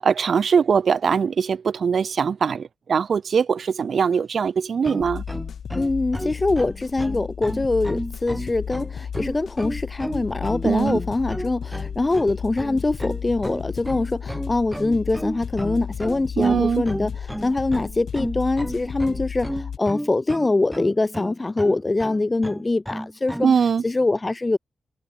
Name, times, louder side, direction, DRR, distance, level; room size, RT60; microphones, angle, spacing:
voice 1, 0.0-5.2 10.6-11.0 16.4-16.8 23.4-23.8, right 6 dB, 55° right, 0.4 m, -21 dB
sound 1, 4.8-23.6, equal, 5° right, 3.7 m, -33 dB
sound 2, 5.0-19.8, left 7 dB, 65° left, 7.1 m, -34 dB
voice 2, 5.7-17.1 17.4-23.5 23.8-24.6, left 2 dB, 20° left, 1.4 m, -23 dB
wide cardioid pair, 150°, 0 cm